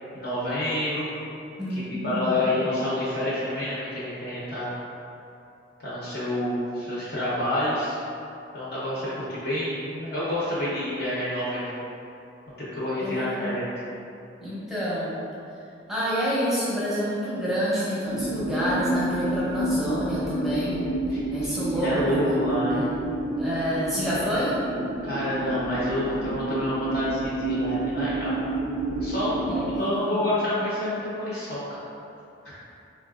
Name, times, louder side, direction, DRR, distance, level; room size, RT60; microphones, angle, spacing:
voice 1, 0.1-1.0 1.9-4.8 5.8-8.0 8.5-11.7 12.6-13.7 21.1-22.9 24.1-24.4 25.0-28.4 29.0-31.8, left 1 dB, 55° left, -9 dB, 0.7 m, -28 dB
voice 2, 1.6-2.4 13.0-13.5 14.4-15.1 15.9-20.8 21.3-22.4 22.7-22.9 23.4-24.5 29.5-30.2, equal, ahead, -10 dB, 0.7 m, -28 dB
sound 1, 18.0-29.8, right 1 dB, 85° right, 0.4 m, -29 dB
3.9 x 2.3 x 2.4 m, 2.7 s
head